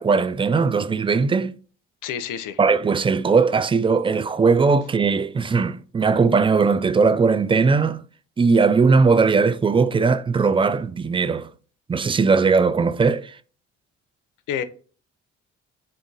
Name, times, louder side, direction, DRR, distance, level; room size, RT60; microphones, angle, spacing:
voice 1, 0.0-1.5 2.6-8.0 8.4-11.5 11.9-13.3, right 4 dB, 15° right, 0.3 m, -19 dB
voice 2, 2.0-2.6 14.5-14.6, left 8 dB, 70° left, 0.6 m, -28 dB
3.8 x 2.6 x 3.8 m
supercardioid pair, 65°, 33 cm